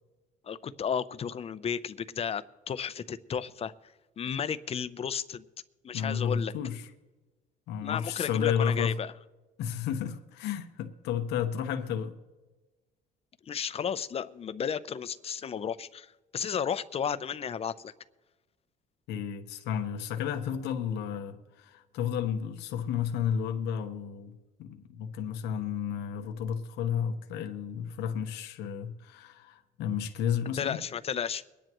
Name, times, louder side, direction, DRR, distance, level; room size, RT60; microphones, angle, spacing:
voice 1, 0.4-3.7 4.2-5.4 5.8-6.5 7.8-9.1 13.5-17.9 30.6-31.4, left 7 dB, 35° left, 0.6 m, -33 dB
voice 2, 5.9-6.9 7.7-8.9 9.6-12.2 19.1-30.8, left 8 dB, 85° left, 1.1 m, -32 dB
23.0 x 10.0 x 3.0 m
cardioid pair, 110°, 17 cm